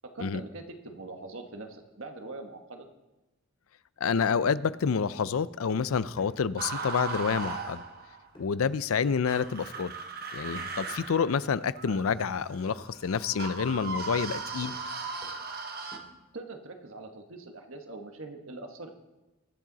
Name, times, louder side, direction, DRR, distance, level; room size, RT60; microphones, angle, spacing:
voice 1, 0.1-2.9 16.3-18.9, right 3 dB, 70° right, 4 dB, 1.4 m, -42 dB
voice 2, 4.0-7.8 8.4-9.9 10.3-14.8, left 6 dB, 80° left, 17 dB, 0.5 m, -28 dB
sound 1, 4.9-5.9 6.2-7.7 8.3-8.6 9.1-9.3 9.7-10.1 10.5-11.1 11.4-11.8 12.1-12.5 12.8-13.0 13.3-15.6 15.9-16.3, equal, 25° left, 2.4 m, -54 dB
sound 2, 6.6-8.3 9.3-16.0, right 4 dB, 45° right, 1.2 m, -37 dB
22.5 x 7.5 x 4.0 m, 1.0 s
head